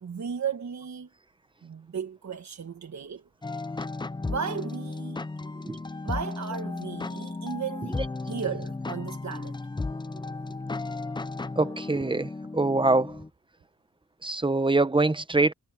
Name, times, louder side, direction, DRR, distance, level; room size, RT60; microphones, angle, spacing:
voice 1, 0.0-1.1 1.6-3.6 4.2-5.3 6.0-8.0 8.3-9.6, right 7 dB, 50° right, 1.4 m, -35 dB
sound 1, 3.4-13.3, left 3 dB, 15° left, 0.5 m, -35 dB
voice 2, 11.6-13.2 14.2-15.5, right 2 dB, 15° right, 0.9 m, -24 dB
wide cardioid pair, 105°, 36 cm